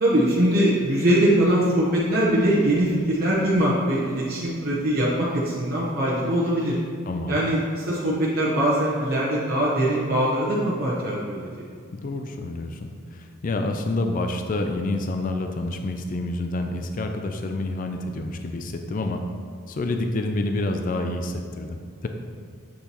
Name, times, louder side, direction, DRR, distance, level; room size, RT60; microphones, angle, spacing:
voice 1, 0.0-6.8 7.3-11.5, right 1 dB, 45° right, -7 dB, 1.0 m, -22 dB
voice 2, 7.1-7.4 11.9-19.2 19.7-22.1, left 2 dB, 40° left, 5 dB, 0.4 m, -28 dB
7.7 x 6.8 x 3.0 m, 2.2 s
head